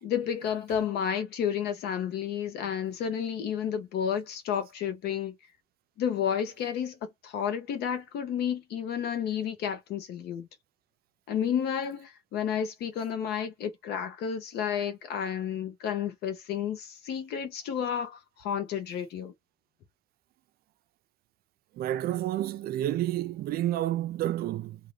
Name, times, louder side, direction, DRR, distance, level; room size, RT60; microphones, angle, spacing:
voice 1, 0.0-5.3 6.0-10.5 11.3-19.3, left 8 dB, 75° left, 1.0 m, -31 dB
voice 2, 21.8-24.8, right 13 dB, 65° right, 0.4 m, -30 dB
2.6 x 2.6 x 3.2 m
cardioid pair, 110°, 17 cm